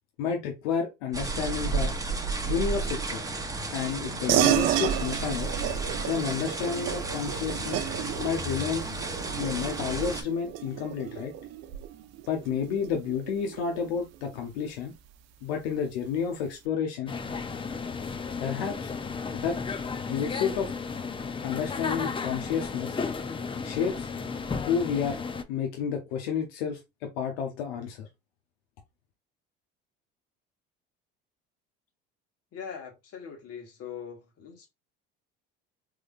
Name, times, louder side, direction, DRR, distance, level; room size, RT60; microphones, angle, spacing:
voice 1, 0.2-1.9 2.4-3.2 3.7-5.5 6.1-7.8 8.2-8.8 9.4-11.3 12.3-14.9 15.4-17.1 18.4-18.9 19.3-19.6 20.1-20.7 21.4-23.0 23.6-24.1 24.6-25.2 25.5-28.1, left 7 dB, 80° left, 0.9 m, -30 dB
sound 1, 1.1-10.2, right 3 dB, 10° right, 0.8 m, -32 dB
sound 2, 4.3-14.2, right 13 dB, 60° right, 0.6 m, -32 dB
sound 3, 17.1-25.4, left 5 dB, 20° left, 0.5 m, -34 dB
voice 2, 32.5-34.7, left 7 dB, 55° left, 1.6 m, -41 dB
3.8 x 3.1 x 2.4 m
hypercardioid pair, 75°, 29 cm